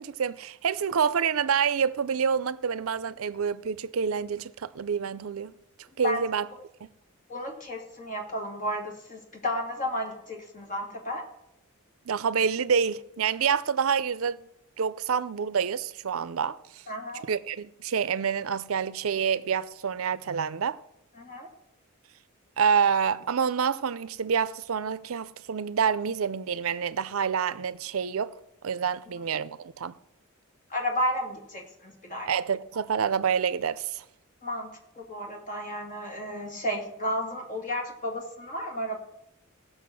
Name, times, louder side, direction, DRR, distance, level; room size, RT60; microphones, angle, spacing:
voice 1, 0.0-5.5 6.0-6.5 12.1-14.4 14.8-16.8 17.3-20.8 22.6-28.3 28.6-29.9 32.3-34.0, right 6 dB, 70° right, 0.5 m, -27 dB
voice 2, 7.3-11.2 16.9-17.2 21.2-21.5 30.7-32.3 34.4-39.0, equal, 40° left, 2.8 m, -32 dB
16.5 x 6.5 x 6.1 m
head